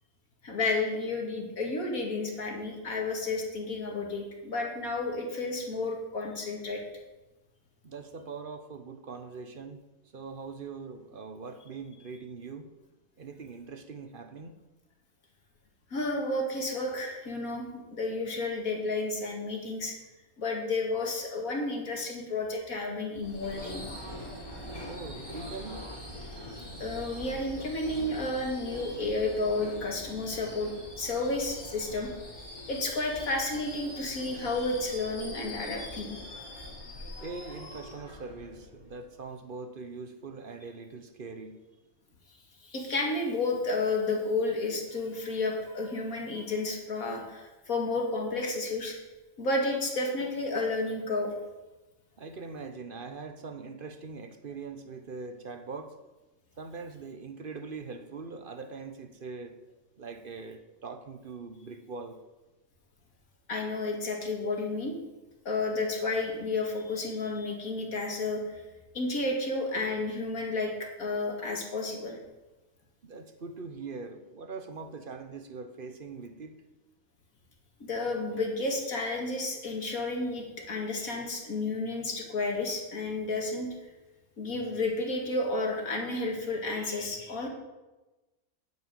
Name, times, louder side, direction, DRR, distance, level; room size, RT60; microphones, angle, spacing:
voice 1, 0.4-6.8 15.9-19.9 20.4-23.9 26.8-30.7 31.0-32.1 32.7-36.2 42.6-49.0 49.4-51.3 63.5-65.0 65.4-68.6 68.9-72.2 77.8-83.7 84.4-87.5, left 2 dB, 80° left, 1 dB, 2.6 m, -31 dB
voice 2, 7.8-9.8 10.1-12.7 13.2-14.6 24.9-25.9 37.2-41.6 52.2-56.0 56.6-59.6 60.0-62.2 73.0-76.6, right 4 dB, 45° right, 8 dB, 1.0 m, -42 dB
Subway metro underground / Screech, 23.1-39.1, left 1 dB, 15° left, 3.7 m, -43 dB
8.9 x 8.3 x 8.8 m, 1.1 s
omnidirectional pair, 1.5 m